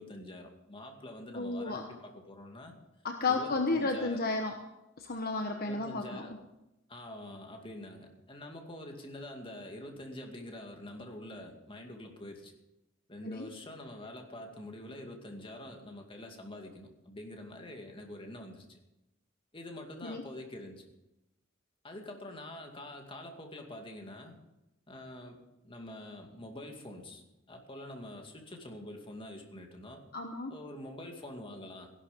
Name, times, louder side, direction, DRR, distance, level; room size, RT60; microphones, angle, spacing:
voice 1, 0.0-2.7 3.3-4.3 5.6-6.4 6.9-12.5 13.1-18.8 19.5-20.8 21.8-24.3 24.9-30.0 30.5-31.9, left 1 dB, 25° left, 2 dB, 2.3 m, -46 dB
voice 2, 1.3-1.8 3.0-4.5 5.0-6.2 13.2-13.5 20.0-20.2 30.1-30.5, left 3 dB, 50° left, 4 dB, 1.1 m, -32 dB
16.0 x 11.5 x 5.3 m, 0.93 s
head